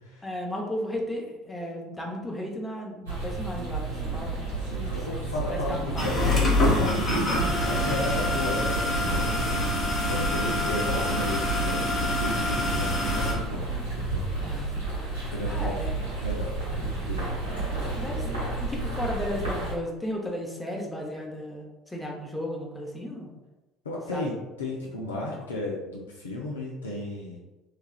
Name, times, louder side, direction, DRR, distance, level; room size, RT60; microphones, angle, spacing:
voice 1, 0.2-4.5 5.1-6.6 7.6-7.9 10.6-10.7 14.4-15.9 17.9-23.3 24.1-24.3, left 1 dB, 15° left, -1 dB, 0.7 m, -35 dB
sound 1, 3.1-19.7, right 3 dB, 85° right, 0.8 m, -31 dB
voice 2, 4.6-7.0 7.6-9.4 10.1-13.6 13.9-14.2 15.3-16.5 16.9-17.3 23.8-27.4, left 2 dB, 85° left, -3 dB, 0.4 m, -34 dB
sound 2, 6.0-13.3, left 1 dB, 50° left, 0.9 m, -26 dB
3.1 x 2.3 x 2.3 m, 1.1 s
figure-of-eight pair, 60°, 0 cm